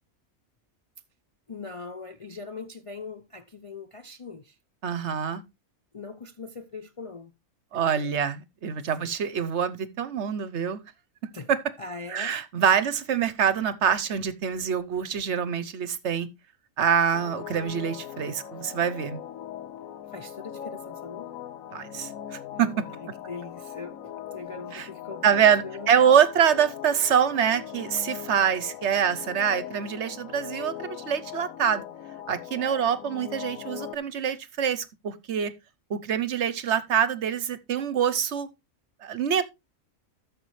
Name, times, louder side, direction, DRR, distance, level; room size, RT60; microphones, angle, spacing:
voice 1, 1.5-4.6 5.9-7.3 7.7-8.2 9.0-9.1 11.3-11.5 11.8-12.4 20.1-21.3 22.9-26.2, left 4 dB, 40° left, 0.4 m, -41 dB
voice 2, 4.8-5.4 7.7-10.8 11.5-11.6 12.1-16.3 16.8-19.2 21.7-22.9 24.7-24.9 25.2-31.8 32.3-35.5 35.9-38.5 39.0-39.4, right 8 dB, 60° right, 1.0 m, -25 dB
sound 1, 17.1-33.9, left 10 dB, 75° left, 1.1 m, -40 dB
13.5 x 6.7 x 3.2 m
omnidirectional pair, 1.5 m